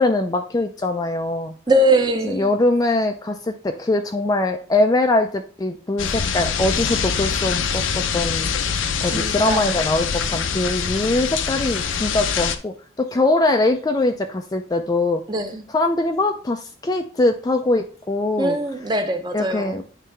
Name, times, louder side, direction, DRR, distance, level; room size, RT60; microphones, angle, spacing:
voice 1, 0.0-1.5 2.3-8.7 9.0-15.2 15.7-18.6 19.3-19.8, left 2 dB, 20° left, 5 dB, 0.3 m, -22 dB
voice 2, 1.7-2.5 9.0-9.8 15.3-15.6 18.4-19.8, right 1 dB, 20° right, 6 dB, 0.7 m, -22 dB
sound 1, 6.0-12.6, left 6 dB, 75° left, 0.6 m, -24 dB
9.2 x 3.3 x 3.2 m, 0.41 s
head